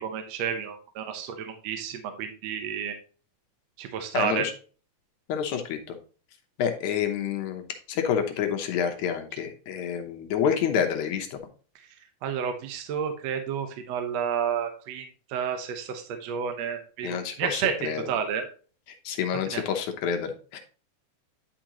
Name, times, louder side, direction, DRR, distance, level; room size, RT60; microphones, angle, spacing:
voice 1, 0.0-2.9 3.8-4.5 12.2-18.5 19.5-19.6, right 7 dB, 65° right, 6 dB, 1.9 m, -31 dB
voice 2, 4.1-4.5 5.3-6.0 6.6-11.4 17.0-18.1 19.1-20.6, left 8 dB, 70° left, 5 dB, 2.2 m, -28 dB
10.0 x 5.1 x 3.0 m, 0.38 s
omnidirectional pair, 3.7 m